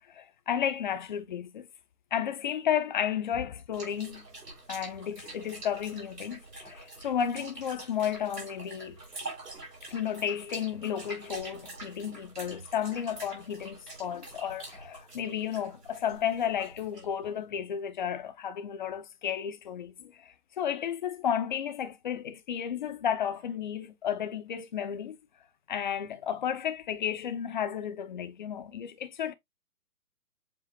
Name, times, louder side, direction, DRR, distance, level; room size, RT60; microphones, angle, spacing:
voice 1, 0.1-1.7 2.1-4.3 4.7-9.0 9.8-25.2 25.7-29.3, left 9 dB, 30° left, 0.6 m, -33 dB
sound 1, 3.7-17.3, right 2 dB, 85° right, 3.5 m, -45 dB
7.4 x 2.5 x 2.8 m
figure-of-eight pair, 135°, 46 cm